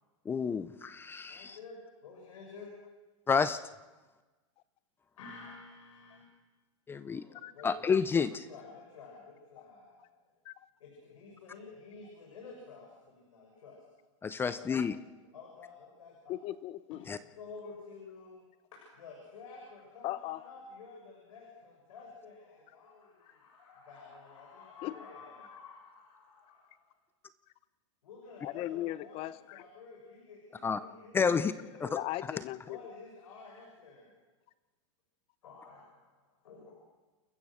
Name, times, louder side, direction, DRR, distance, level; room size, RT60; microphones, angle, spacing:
voice 1, 0.3-1.6 3.3-3.6 6.9-7.2 7.6-8.5 14.2-14.9 17.1-17.2 30.6-30.8 31.1-31.5 31.8-31.9, left 6 dB, 15° left, 14 dB, 0.6 m, -29 dB
voice 2, 1.3-2.7 5.2-6.2 7.1-7.8 8.3-10.2 10.8-13.8 14.5-14.8 15.3-16.4 17.2-18.4 18.7-26.9 28.0-32.0 32.6-34.1 35.4-36.7, left 4 dB, 90° left, -2 dB, 6.8 m, -51 dB
voice 3, 16.3-17.1 20.0-20.4 24.8-25.0 28.4-29.6 31.9-32.8, left 15 dB, 35° left, 17 dB, 0.9 m, -37 dB
29.5 x 14.0 x 6.4 m, 1.2 s
supercardioid pair, 145°, 17 cm